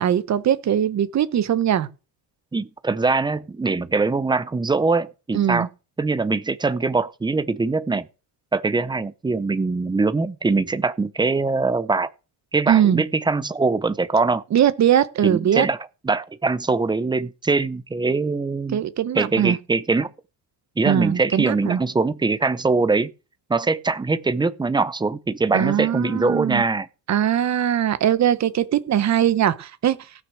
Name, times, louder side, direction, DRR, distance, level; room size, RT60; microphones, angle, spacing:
voice 1, 0.0-1.9 5.3-5.7 12.7-13.0 14.5-15.7 18.7-19.6 20.8-21.8 25.5-26.6 27.1-30.0, right 10 dB, 40° right, 1.0 m, -20 dB
voice 2, 2.5-5.7 6.0-8.1 8.5-12.1 12.5-14.4 15.2-15.8 16.0-18.8 19.1-20.1 20.8-23.1 23.5-26.9, right 3 dB, 10° right, 0.6 m, -22 dB
16.5 x 6.3 x 6.3 m
cardioid pair, 155°, 41 cm